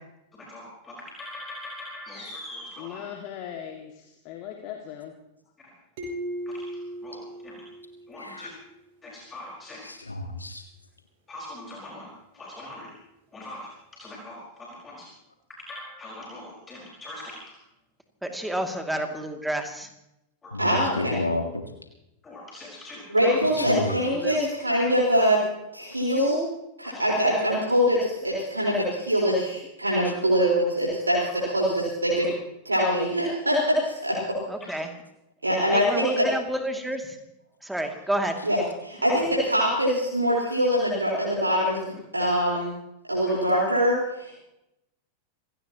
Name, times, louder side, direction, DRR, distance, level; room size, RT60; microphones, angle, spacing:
voice 1, 0.4-3.0 5.6-5.7 6.5-7.6 8.1-8.5 9.0-9.8 11.3-12.9 13.3-15.1 15.5-17.5 20.4-20.5 22.2-23.4 26.9-27.0, left 1 dB, 20° left, -3 dB, 4.8 m, -42 dB
voice 2, 2.8-5.1, left 10 dB, 40° left, 3 dB, 2.0 m, -39 dB
sound 1, 6.0-8.5, right 1 dB, 50° right, 7.4 m, -37 dB
voice 3, 8.2-8.5 9.8-10.6 20.5-21.6 23.6-24.0, left 2 dB, 80° left, 5 dB, 1.7 m, -30 dB
voice 4, 18.2-19.9 24.2-24.4 34.5-34.9 35.7-37.2 37.6-38.4, right 1 dB, 5° right, 5 dB, 2.4 m, -30 dB
voice 5, 20.6-21.1 23.1-25.4 25.7-26.4 26.8-32.3 32.6-34.4 35.4-36.2 38.4-38.6 38.8-41.8 42.1-42.7 43.1-44.4, equal, 80° right, -4 dB, 4.3 m, -23 dB
27.5 x 17.5 x 3.0 m, 0.86 s
figure-of-eight pair, 90°, 0 cm